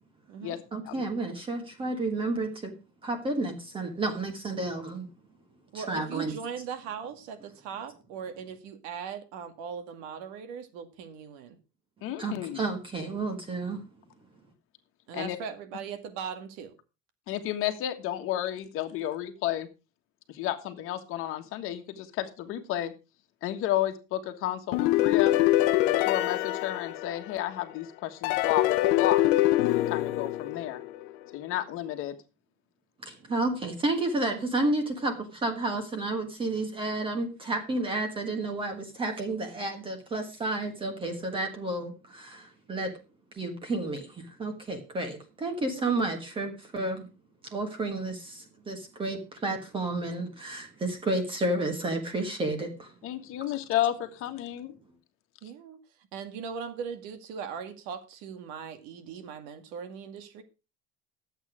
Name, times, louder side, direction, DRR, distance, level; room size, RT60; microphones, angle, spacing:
voice 1, 0.7-2.8 3.0-5.1 5.7-6.3 12.2-13.8 33.0-42.9 43.3-47.1 47.4-52.9, right 2 dB, 15° right, 1.5 m, -31 dB
voice 2, 5.7-11.6 15.1-16.7 45.7-45.8 55.4-55.8 56.1-60.4, right 7 dB, 70° right, 2.2 m, -39 dB
voice 3, 12.0-12.6 15.1-15.4 17.3-19.7 20.3-22.9 23.4-25.3 26.0-29.3 29.7-30.8 31.3-32.2 53.0-54.7, left 12 dB, 45° left, 1.5 m, -32 dB
sound 1, 24.7-27.6 28.2-31.1, left 15 dB, 80° left, 0.9 m, -24 dB
12.0 x 8.2 x 5.0 m
cardioid pair, 175°, 29 cm